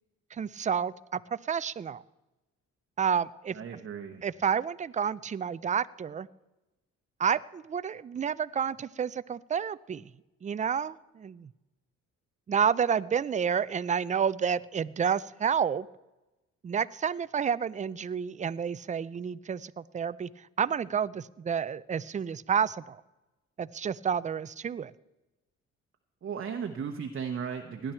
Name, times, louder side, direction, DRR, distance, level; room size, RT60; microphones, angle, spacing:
voice 1, 0.3-2.0 3.0-3.6 4.2-6.3 7.2-10.1 10.4-11.5 12.5-15.9 16.6-20.3 20.6-23.0 23.6-24.9, right 7 dB, 25° right, 18 dB, 0.4 m, -30 dB
voice 2, 3.5-4.2 26.2-27.9, right 6 dB, 45° right, 4 dB, 1.0 m, -35 dB
18.0 x 10.5 x 4.5 m, 1.0 s
cardioid pair, 90°, 30 cm